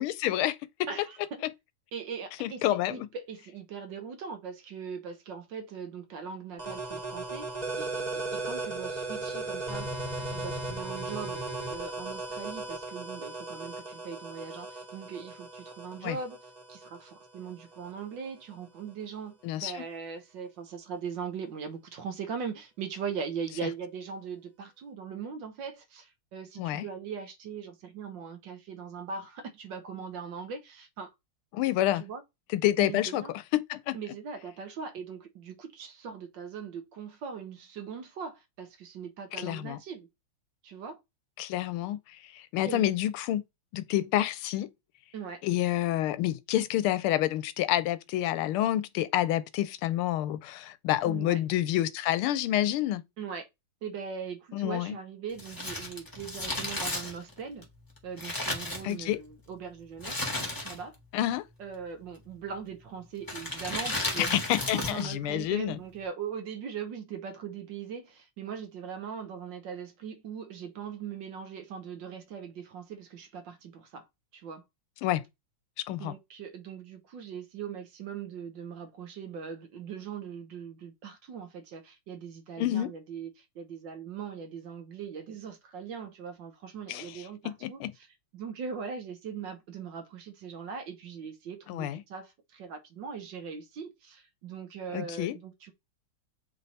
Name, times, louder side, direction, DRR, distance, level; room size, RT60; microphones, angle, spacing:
voice 1, 0.0-0.9 2.4-3.1 16.0-16.2 19.4-19.8 26.6-26.9 31.5-32.0 32.5-33.2 33.5-34.0 39.3-39.8 41.4-43.4 43.7-44.7 45.4-53.0 54.5-55.0 58.8-59.2 61.1-61.4 64.2-65.8 75.0-75.2 75.9-76.1 82.6-82.9 86.9-87.1 87.4-87.9 91.7-92.0 94.9-95.4, left 13 dB, 80° left, 1.4 m, -28 dB
voice 2, 0.9-1.4 1.9-2.6 2.9-7.5 7.7-9.9 10.2-11.4 11.7-16.4 16.7-31.1 31.9-32.2 32.8-33.3 33.9-40.1 40.6-41.0 42.6-42.9 45.1-45.4 51.0-51.4 53.2-53.5 53.8-57.7 58.0-60.2 60.6-61.0 61.6-64.4 64.7-74.1 74.3-74.6 75.9-88.1 88.3-95.7, right 6 dB, 65° right, 1.5 m, -40 dB
sound 1, 6.6-18.0, right 2 dB, 25° right, 1.1 m, -37 dB
Crumpling crinkling, 55.3-59.3 60.0-61.0 61.3-61.4 62.2-62.5 63.2-65.1 65.4-65.5, left 1 dB, 10° left, 1.3 m, -34 dB
7.5 x 3.3 x 4.1 m
omnidirectional pair, 2.4 m